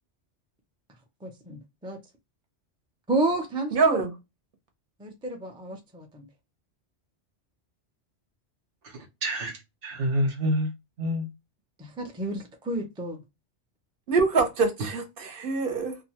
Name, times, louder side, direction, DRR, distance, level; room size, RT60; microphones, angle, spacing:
voice 1, 1.2-2.0 3.1-4.0 5.0-6.3 11.8-13.2, right 2 dB, 10° right, 0.3 m, -31 dB
voice 2, 3.7-4.1 14.1-16.0, right 4 dB, 55° right, 0.9 m, -24 dB
voice 3, 8.8-10.7 11.0-11.3, equal, 90° right, 1.2 m, -28 dB
2.7 x 2.2 x 2.8 m
omnidirectional pair, 1.2 m